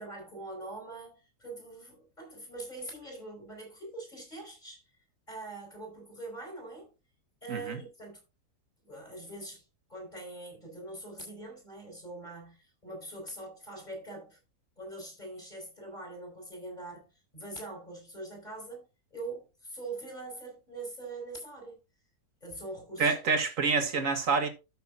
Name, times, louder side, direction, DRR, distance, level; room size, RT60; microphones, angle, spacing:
voice 1, 0.0-4.8 5.3-6.9 7.4-8.2 8.8-9.6 9.9-14.4 14.8-17.0 17.3-21.8 22.4-23.1, right 2 dB, 30° left, 5.3 m, -43 dB
voice 2, 7.5-7.8 23.0-24.5, right 4 dB, 55° right, 2.0 m, -27 dB
13.0 x 6.7 x 2.7 m
omnidirectional pair, 1.7 m